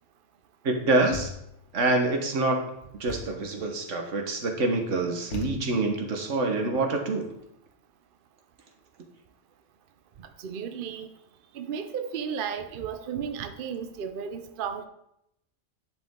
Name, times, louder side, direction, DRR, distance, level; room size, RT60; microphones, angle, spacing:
voice 1, 0.6-1.3 1.7-2.6 3.0-7.3, right 2 dB, 75° right, 3 dB, 1.5 m, -26 dB
Thump thud, 1.1-1.7 3.1-3.5 5.3-6.0, left 5 dB, 70° left, 1.3 m, -39 dB
voice 2, 10.2-11.1 11.5-14.9, right 7 dB, 55° right, 8 dB, 0.7 m, -34 dB
10.5 x 5.2 x 3.7 m, 0.79 s
omnidirectional pair, 1.3 m